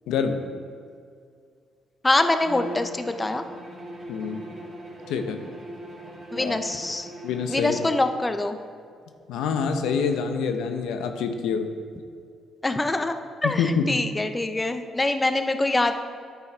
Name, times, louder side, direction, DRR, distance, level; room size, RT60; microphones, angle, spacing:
voice 1, 0.1-0.4 4.1-4.4 5.1-5.4 6.4-6.5 7.2-7.8 9.3-11.7 13.4-14.0, left 6 dB, 90° left, 6 dB, 0.7 m, -26 dB
voice 2, 2.0-3.4 6.3-7.1 7.5-8.6 12.6-13.1 13.4-15.9, left 2 dB, 15° left, 8 dB, 0.6 m, -24 dB
Bowed string instrument, 2.4-8.2, right 1 dB, 30° right, 1.9 m, -40 dB
10.5 x 4.6 x 4.4 m, 2.3 s
cardioid pair, 90°, 0 cm